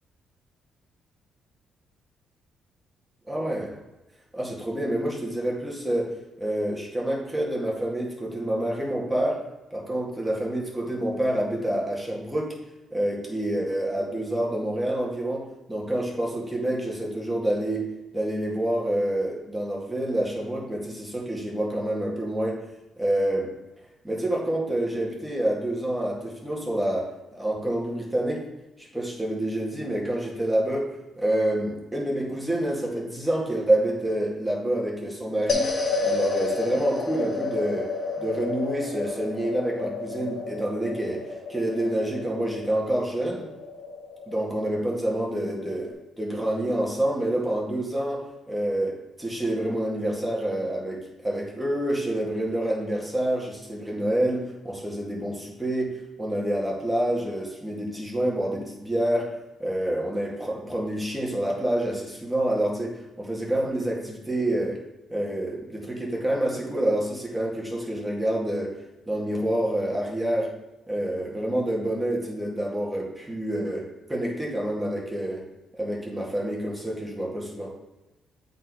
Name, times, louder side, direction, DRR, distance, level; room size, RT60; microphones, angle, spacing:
voice 1, 3.3-3.8 4.3-9.4 9.7-12.6 12.9-22.6 23.0-23.5 24.0-28.5 28.8-35.7 36.0-37.9 38.2-43.5 44.3-64.8 65.1-68.7 69.1-70.5 70.9-75.4 75.8-77.7, right 1 dB, 5° right, -3 dB, 2.0 m, -27 dB
sound 1, 35.5-45.9, left 4 dB, 50° left, 1.6 m, -31 dB
7.9 x 4.2 x 4.7 m, 1.0 s
cardioid pair, 90°, 0 cm